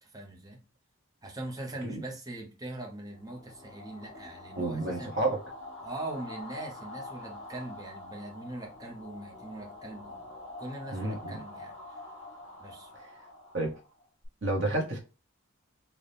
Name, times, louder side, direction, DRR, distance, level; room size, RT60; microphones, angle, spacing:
voice 1, 0.0-0.6 1.2-5.1 5.8-10.2 10.6-11.8 12.6-12.9, right 2 dB, 15° right, 0.8 m, -41 dB
sound 1, 3.1-14.3, left 2 dB, 65° left, 1.4 m, -46 dB
voice 2, 4.6-5.4 10.9-11.4 12.9-13.0 13.5-13.7 14.4-15.0, right 2 dB, 55° right, 1.1 m, -30 dB
4.1 x 2.3 x 3.3 m
head